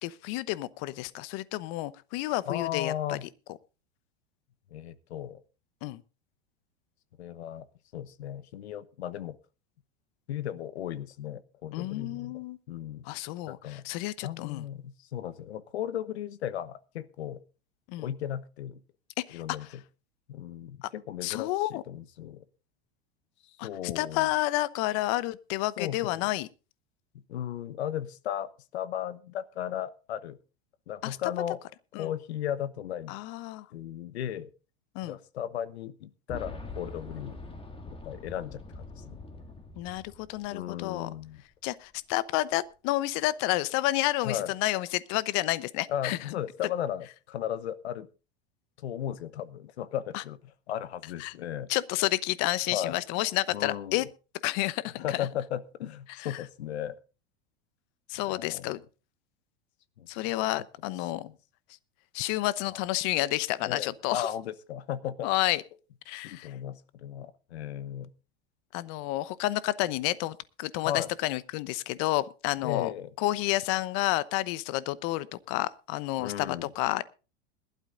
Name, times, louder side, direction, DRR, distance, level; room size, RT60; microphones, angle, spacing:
voice 1, 0.0-3.2 5.8-6.0 11.7-12.6 13.0-14.6 17.9-18.1 19.3-19.6 20.8-20.9 21.2-21.8 23.6-26.5 31.0-31.2 31.9-32.1 33.1-33.7 34.9-35.2 39.8-41.1 41.6-46.2 50.1-50.2 51.2-51.3 51.7-54.1 54.4-55.3 56.2-56.3 58.1-58.8 60.1-61.3 62.1-64.3 65.2-65.6 66.1-66.5 68.7-72.9 73.2-77.0, left 17 dB, 55° left, 17 dB, 0.9 m, -30 dB
voice 2, 2.5-3.2 4.7-5.4 7.2-7.7 7.9-9.4 10.3-12.4 12.7-13.0 13.4-13.8 14.2-17.4 18.0-18.8 19.3-19.8 20.3-22.4 23.4-24.3 25.8-26.3 27.3-30.4 30.9-31.6 32.0-33.2 33.7-34.5 35.0-37.4 37.9-39.2 40.5-41.4 44.2-44.5 45.9-48.1 48.8-51.7 52.7-52.9 53.5-54.1 55.0-56.9 58.3-58.8 60.0-60.3 61.0-61.4 62.7-62.8 63.6-65.3 66.2-68.1 70.8-71.1 72.6-73.1 76.2-76.7, left 10 dB, 85° left, 16 dB, 1.1 m, -36 dB
Boom, 36.3-41.0 41.3-41.4 42.5-42.6, left 3 dB, 15° left, 2.4 m, -44 dB
21.5 x 12.0 x 2.6 m, 0.33 s
hypercardioid pair, 110°, 32 cm